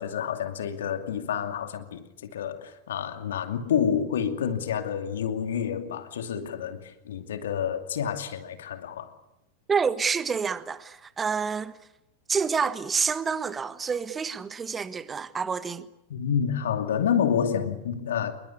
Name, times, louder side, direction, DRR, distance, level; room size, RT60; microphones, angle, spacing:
voice 1, 0.0-2.1 2.3-9.1 16.1-18.3, left 8 dB, 60° left, 2.6 m, -28 dB
voice 2, 9.7-11.8 12.3-15.9, right 6 dB, 15° right, 1.5 m, -28 dB
27.5 x 22.5 x 8.4 m
figure-of-eight pair, 90°, 0 cm